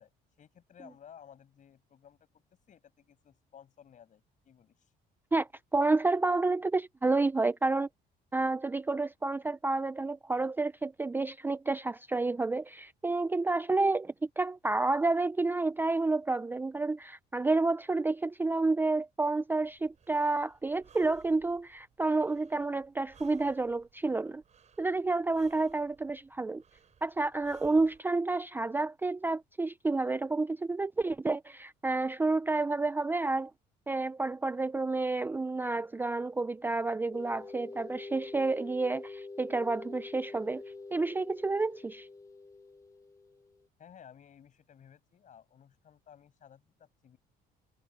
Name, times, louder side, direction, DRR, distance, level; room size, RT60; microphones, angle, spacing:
voice 1, 0.0-2.4 2.7-4.9 43.8-47.2, left 8 dB, 50° left, 6.8 m, -56 dB
voice 2, 5.3-7.9 8.3-24.4 24.8-26.6 27.0-33.5 33.9-40.6 40.9-42.1, right 3 dB, 10° right, 0.4 m, -30 dB
Breathing, 19.6-28.0, right 7 dB, 45° right, 7.7 m, -62 dB
sound 1, 37.1-43.7, left 3 dB, 20° left, 1.4 m, -46 dB
cardioid pair, 110°, 17 cm